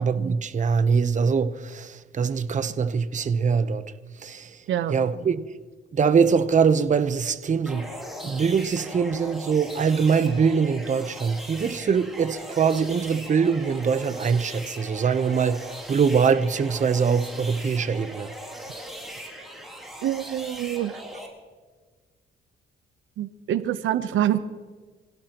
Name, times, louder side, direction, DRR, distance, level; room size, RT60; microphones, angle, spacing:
voice 1, 0.0-3.9 4.2-4.6 4.9-5.4 5.9-7.9 8.2-18.3, right 6 dB, 40° right, 0.9 m, -23 dB
sound 1, 7.7-21.3, equal, ahead, 5.3 m, -39 dB
voice 2, 20.0-20.9 23.2-24.4, right 11 dB, 80° right, 0.9 m, -25 dB
26.0 x 17.0 x 3.0 m
cardioid pair, 90°, 20 cm